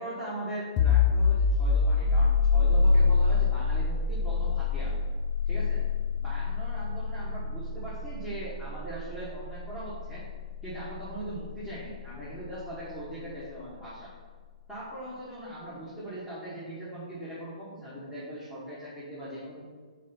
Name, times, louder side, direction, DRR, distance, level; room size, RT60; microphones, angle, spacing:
voice 1, 0.0-4.9 5.5-5.8 6.2-10.2 10.6-14.1 14.7-19.6, right 1 dB, 10° right, -11 dB, 1.8 m, -40 dB
sound 1, 0.8-12.2, left 4 dB, 30° left, 0.7 m, -26 dB
5.2 x 4.1 x 5.6 m, 1.5 s
figure-of-eight pair, 125°, 4 cm